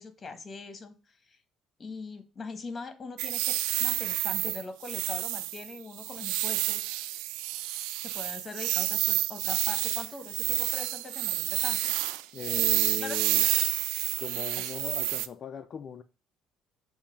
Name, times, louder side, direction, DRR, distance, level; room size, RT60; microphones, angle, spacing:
voice 1, 0.0-1.4 1.8-6.9 8.0-12.0 13.0-13.2 14.5-14.7, left 3 dB, 30° left, 1.4 m, -42 dB
sound 1, 3.2-15.3, right 16 dB, 85° right, 0.3 m, -29 dB
voice 2, 12.3-13.5 14.2-16.0, left 7 dB, 50° left, 0.4 m, -39 dB
7.1 x 2.7 x 5.0 m
supercardioid pair, 80°, 0 cm